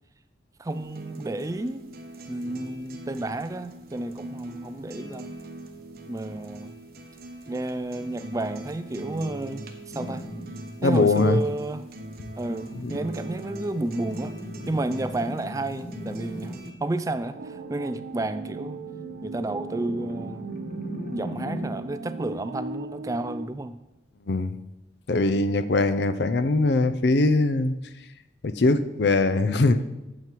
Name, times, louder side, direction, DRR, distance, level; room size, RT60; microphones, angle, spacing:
voice 1, 0.6-1.8 2.3-5.3 6.1-6.7 7.5-9.6 9.9-10.3 10.8-11.9 12.4-14.3 14.7-18.8 19.2-20.5 21.1-23.8, right 2 dB, 20° right, 12 dB, 0.3 m, -31 dB
sound 1, 0.7-16.7, right 1 dB, 55° right, 0.9 m, -41 dB
sound 2, 9.9-10.7 12.4-16.9 18.4-21.9, equal, 45° left, 1.1 m, -40 dB
voice 2, 10.8-11.4 12.7-12.9 24.3-24.6 25.1-27.7 28.4-29.8, left 2 dB, 70° left, 12 dB, 0.5 m, -21 dB
sound 3, 17.3-23.5, right 3 dB, 85° right, 0.5 m, -38 dB
8.9 x 7.5 x 4.6 m, 0.95 s
head